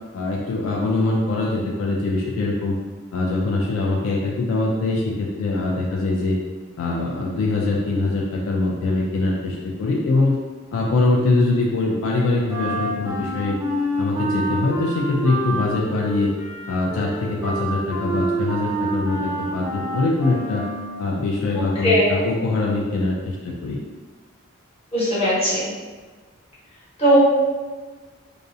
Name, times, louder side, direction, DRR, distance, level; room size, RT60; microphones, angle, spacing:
voice 1, 0.1-2.8 3.1-6.4 6.8-10.4 10.7-13.6 14.0-16.3 16.7-20.6 21.0-23.8, left 2 dB, 80° left, -2 dB, 0.3 m, -23 dB
Wind instrument woodwind instrument, 12.5-21.1, right 1 dB, 10° right, 0.3 m, -28 dB
voice 2, 21.5-22.1 24.9-25.7 27.0-27.1, equal, 30° left, -10 dB, 0.9 m, -19 dB
2.4 x 2.0 x 2.6 m, 1.4 s
head